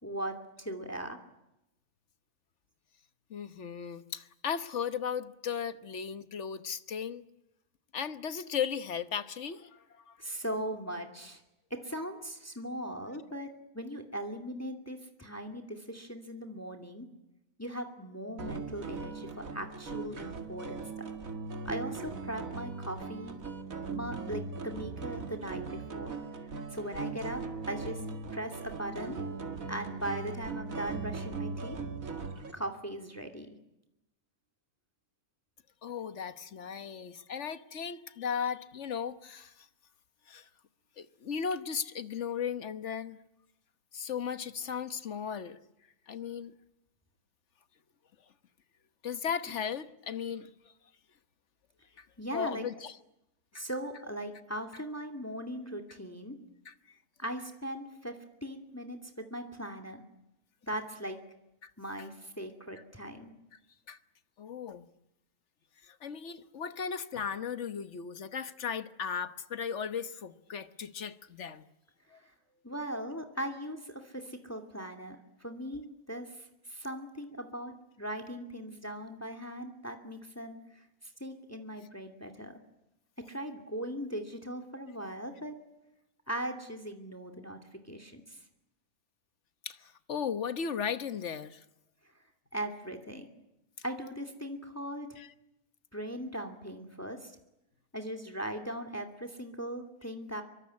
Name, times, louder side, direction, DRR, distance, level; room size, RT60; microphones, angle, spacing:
voice 1, 0.0-1.2 10.2-11.4 11.7-13.5 13.7-17.1 17.6-20.9 21.6-23.4 23.9-26.1 26.7-28.0 28.3-29.2 29.7-31.8 32.5-33.5 52.2-52.7 53.5-56.4 57.2-60.0 60.6-61.2 61.8-63.3 72.2-72.3 72.6-80.9 81.2-82.6 83.2-85.6 86.3-88.4 92.5-93.3 93.8-95.2 95.9-97.4 97.9-100.4, right 1 dB, 10° left, 2.5 m, -39 dB
voice 2, 3.3-7.2 7.9-9.8 10.1-10.2 35.8-39.5 40.3-40.4 41.0-43.2 43.9-45.6 46.1-46.5 49.0-50.5 52.0-52.1 52.3-52.9 53.5-53.6 56.7-56.8 61.6-61.7 63.9-64.0 64.4-64.9 65.9-71.6 72.1-72.2 89.6-91.6 95.2-95.3, left 7 dB, 55° left, 1.4 m, -36 dB
sound 1, 18.4-32.5, right 4 dB, 65° right, 2.5 m, -39 dB
25.5 x 23.0 x 9.6 m
omnidirectional pair, 1.6 m